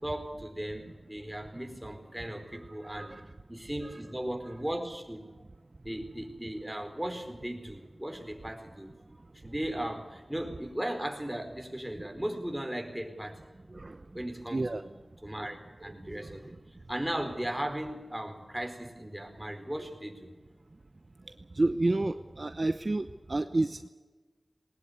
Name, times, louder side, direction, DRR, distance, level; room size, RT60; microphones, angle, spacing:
voice 1, 0.0-3.2 3.5-5.3 5.8-8.9 9.3-13.5 14.1-14.9 15.2-16.5 16.9-20.4, right 1 dB, 10° right, 4 dB, 4.5 m, -37 dB
voice 2, 2.5-3.2 3.8-3.9 13.7-14.0 14.5-14.8 16.1-16.4 21.5-23.9, right 2 dB, 50° right, 10 dB, 0.8 m, -30 dB
20.5 x 19.5 x 8.3 m, 1.3 s
wide cardioid pair, 50°, 0 cm